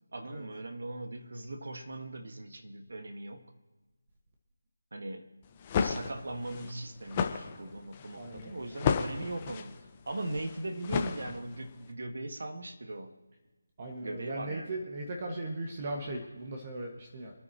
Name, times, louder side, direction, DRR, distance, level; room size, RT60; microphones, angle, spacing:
voice 1, 0.1-3.5 4.9-5.3 5.8-9.7 10.0-13.1 14.0-14.9, right 1 dB, 70° right, 6 dB, 1.7 m, -39 dB
sound 1, 5.4-11.7, left 6 dB, 20° left, 0.9 m, -33 dB
voice 2, 8.2-8.6 13.8-17.3, right 2 dB, 35° right, 1 dB, 1.6 m, -38 dB
29.0 x 10.0 x 3.0 m, 1.2 s
figure-of-eight pair, 165°, 0 cm